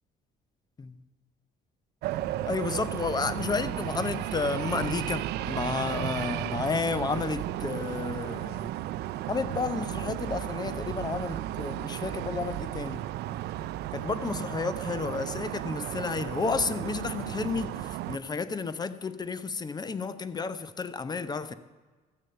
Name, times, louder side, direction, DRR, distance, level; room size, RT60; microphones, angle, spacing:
sound 1, 2.0-18.2, right 14 dB, 75° right, 0.5 m, -34 dB
voice 1, 2.4-8.7 9.3-13.1 13.9-21.5, left 4 dB, 25° left, 0.7 m, -32 dB
13.5 x 6.3 x 9.0 m
cardioid pair, 110°, 17 cm